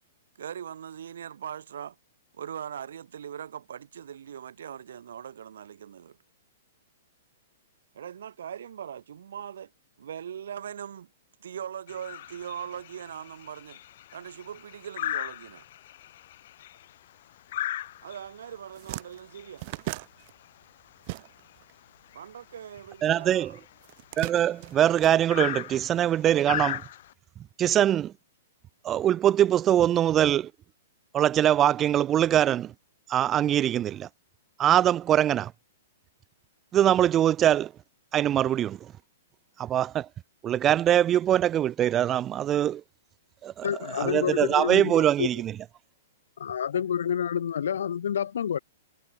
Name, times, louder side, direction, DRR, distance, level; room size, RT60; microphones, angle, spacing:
voice 1, 0.4-2.0 2.3-6.2 7.9-9.7 10.0-11.1 11.4-13.8 14.1-15.6 18.0-19.8 22.1-23.6, right 9 dB, 75° right, 4.1 m, -40 dB
sound 1, 11.9-27.1, left 13 dB, 55° left, 7.7 m, -38 dB
sound 2, 18.1-18.3 18.5-21.7 22.0-23.2 23.8-25.8, right 24 dB, 40° right, 2.0 m, -39 dB
voice 2, 23.0-23.5 24.2-26.8 27.6-28.1 28.8-30.5 31.1-32.7 33.1-34.1 34.6-35.5 36.7-37.7 38.1-38.8 39.6-40.1 40.4-42.8 43.4-43.5 43.9-45.5, right 11 dB, 20° right, 0.6 m, -22 dB
voice 3, 43.6-45.3 46.4-48.6, left 8 dB, 80° left, 4.8 m, -28 dB
hypercardioid pair, 155°, 0 cm